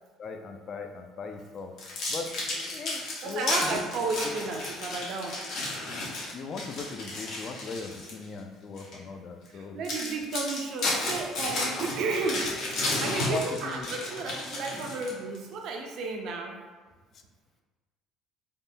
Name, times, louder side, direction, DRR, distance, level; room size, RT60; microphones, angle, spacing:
voice 1, 0.2-1.7 2.1-3.8 6.3-9.8 13.3-13.9, left 3 dB, 45° left, 5 dB, 0.3 m, -38 dB
sound 1, 1.8-8.2 8.8-8.9 9.5-9.6 9.8-15.4, left 2 dB, 65° left, 0.9 m, -33 dB
voice 2, 3.2-5.4 9.5-12.5 13.0-16.6, right 3 dB, 60° right, 1 dB, 0.4 m, -32 dB
3.4 x 2.2 x 2.6 m, 1.3 s
cardioid pair, 105°, 0 cm